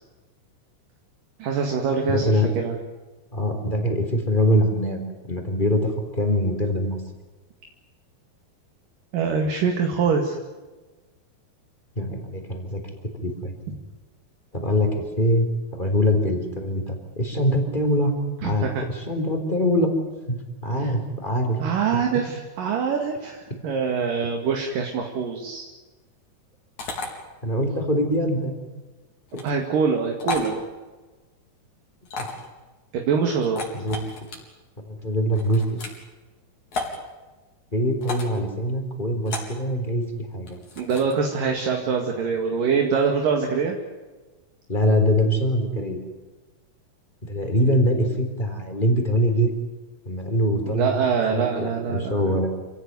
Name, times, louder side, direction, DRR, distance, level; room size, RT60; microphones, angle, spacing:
voice 1, 1.4-2.8 9.1-10.4 18.4-18.8 21.6-25.7 29.4-30.6 32.9-33.6 40.8-43.8 50.6-52.5, right 5 dB, 65° right, 2 dB, 3.7 m, -24 dB
voice 2, 2.1-2.5 3.3-5.0 5.3-7.0 12.0-12.8 13.2-13.5 14.5-15.5 15.7-18.1 18.4-19.9 20.3-20.4 20.6-21.6 21.9-22.0 27.4-28.5 29.3-29.5 32.2-32.3 33.7-34.0 34.9-35.6 37.7-40.0 40.3-40.6 44.7-46.0 47.3-49.5 50.1-51.0 51.3-52.5, equal, 15° left, 4 dB, 3.8 m, -23 dB
sound 1, 26.8-27.1 29.3-29.5 30.2-30.5 32.1-32.5 33.4-34.4 35.3-36.0 36.7-37.0 38.0-38.4 39.3-39.6 40.5-41.1, left 3 dB, 50° left, 5.5 m, -32 dB
28.0 x 17.5 x 9.6 m, 1.3 s
omnidirectional pair, 4.4 m